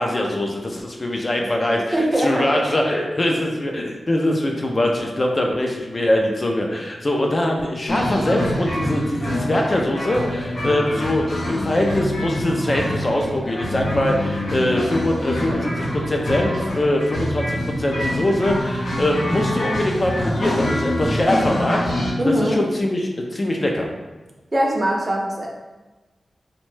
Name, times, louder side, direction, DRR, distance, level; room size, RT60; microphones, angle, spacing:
voice 1, 0.0-23.9, left 1 dB, 35° left, 1 dB, 0.3 m, -22 dB
voice 2, 1.7-2.6 22.2-22.6 24.5-25.5, equal, 30° right, -1 dB, 0.5 m, -21 dB
sound 1, 7.9-22.1, left 1 dB, 80° left, 0.8 m, -25 dB
2.9 x 2.1 x 3.1 m, 1.2 s
wide cardioid pair, 105°, 0 cm